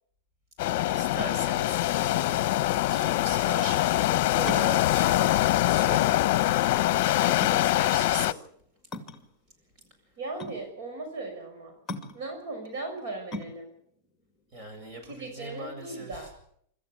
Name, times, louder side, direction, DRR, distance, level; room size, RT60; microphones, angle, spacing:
sound 1, 0.6-8.3, left 16 dB, 55° left, 0.8 m, -24 dB
voice 1, 0.6-4.0 4.5-6.3 6.7-8.4 14.5-16.3, right 1 dB, 35° right, 5 dB, 7.5 m, -40 dB
sound 2, 3.0-15.4, left 1 dB, 10° left, 2.4 m, -42 dB
voice 2, 4.4-4.8 10.2-11.7 12.1-13.7 15.1-16.3, right 2 dB, 60° right, 4 dB, 5.9 m, -37 dB
25.5 x 14.0 x 8.2 m, 0.69 s
supercardioid pair, 150°, 0 cm